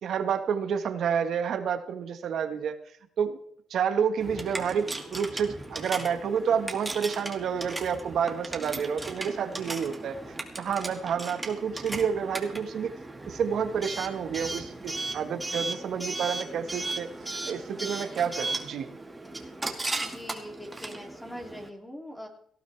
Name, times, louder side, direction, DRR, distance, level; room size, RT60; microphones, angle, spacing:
voice 1, 0.0-2.8 3.2-3.4 3.7-10.2 10.6-12.9 13.3-17.1 17.4-18.9, right 7 dB, 65° right, 8 dB, 1.6 m, -29 dB
Coin (dropping) / Alarm, 4.2-21.7, right 2 dB, 15° right, 2.2 m, -37 dB
voice 2, 20.0-22.3, equal, 10° left, 0 dB, 3.0 m, -42 dB
18.0 x 13.0 x 3.5 m, 0.65 s
cardioid pair, 90°, 0 cm